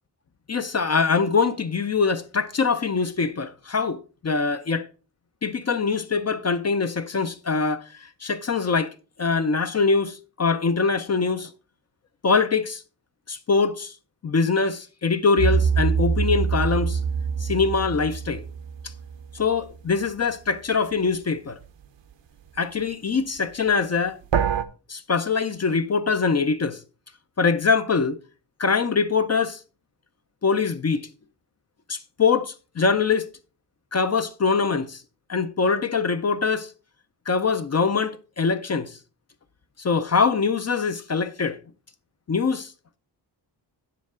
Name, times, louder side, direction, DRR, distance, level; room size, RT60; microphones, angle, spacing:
voice 1, 0.5-4.9 5.4-11.5 12.2-12.8 13.3-13.9 14.2-17.0 17.4-18.4 19.3-21.6 22.6-24.2 24.9-26.8 27.4-28.2 28.6-29.6 30.4-31.1 31.9-33.3 33.9-35.0 35.3-36.7 37.3-39.0 39.8-41.6 42.3-42.7, left 5 dB, 35° left, 0.5 m, -23 dB
sound 1, 15.4-19.6 24.3-24.6, right 6 dB, 75° right, 0.9 m, -24 dB
9.4 x 7.6 x 3.7 m
wide cardioid pair, 170°, 44 cm